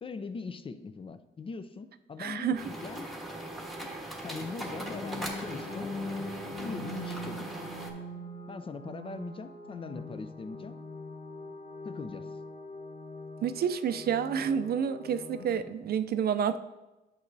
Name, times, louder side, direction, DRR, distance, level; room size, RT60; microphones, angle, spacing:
voice 1, 0.0-3.1 4.2-5.9 6.6-7.6 8.5-10.8 11.8-12.4, left 4 dB, 30° left, 12 dB, 0.4 m, -41 dB
voice 2, 2.2-2.6 13.4-16.6, right 8 dB, 55° right, 11 dB, 0.4 m, -29 dB
sound 1, 2.6-7.9, right 1 dB, ahead, 1.3 m, -39 dB
sound 2, 4.9-15.6, left 1 dB, 45° left, 1.3 m, -42 dB
8.3 x 6.2 x 2.6 m, 1.0 s
cardioid pair, 90°, 20 cm